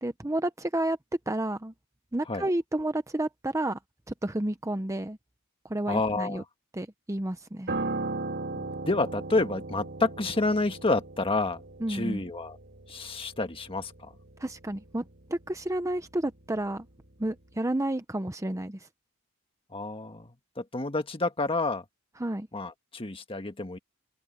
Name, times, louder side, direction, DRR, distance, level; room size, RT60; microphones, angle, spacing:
voice 1, 0.0-1.0 1.3-1.7 2.1-3.8 4.1-5.2 5.6-6.4 6.7-7.7 11.8-12.2 14.4-16.9 17.2-18.9 22.2-22.5, right 1 dB, 15° right, 0.7 m, -31 dB
voice 2, 5.9-6.4 8.5-11.6 11.9-12.6 12.9-14.1 19.7-21.8 22.5-23.8, left 3 dB, 25° left, 1.6 m, -29 dB
Piano, 7.7-17.1 17.3-17.6, right 3 dB, 50° right, 3.8 m, -38 dB
head